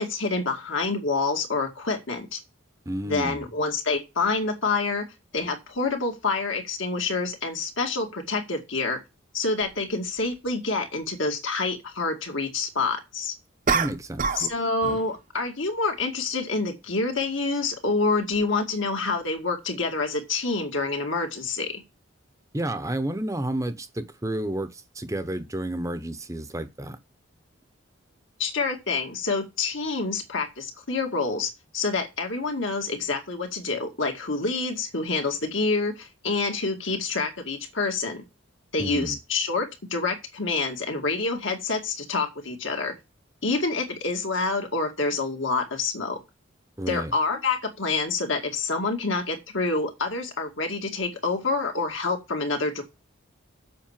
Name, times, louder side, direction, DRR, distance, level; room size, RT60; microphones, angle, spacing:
voice 1, 0.0-2.4 3.0-5.1 5.3-9.0 9.3-13.3 14.4-21.8 28.4-38.2 38.7-42.9 43.4-46.2 46.9-52.8, left 3 dB, 70° left, 2.2 m, -27 dB
voice 2, 2.9-3.5 13.7-14.5 22.5-27.0 38.8-39.2 46.8-47.1, right 1 dB, 15° right, 0.8 m, -31 dB
sound 1, 9.6-9.7 13.7-14.5 14.8-15.1, right 5 dB, 40° right, 0.8 m, -26 dB
7.6 x 5.4 x 7.4 m
head